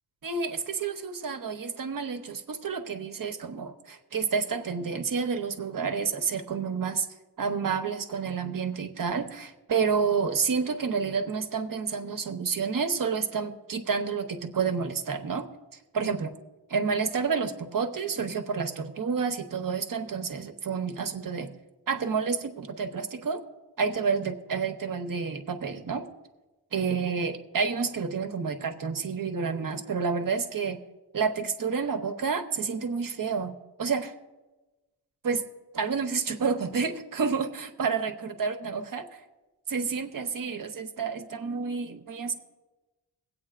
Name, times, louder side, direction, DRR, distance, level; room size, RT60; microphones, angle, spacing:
voice 1, 0.2-7.1 7.4-15.5 15.9-16.3 16.7-21.5 21.9-23.4 23.8-26.1 26.7-30.8 31.1-34.1 35.2-35.4 35.7-39.1 39.7-42.3, right 5 dB, 50° right, 6 dB, 1.0 m, -29 dB
23.0 x 8.5 x 2.5 m, 1.1 s
cardioid pair, 55°, 41 cm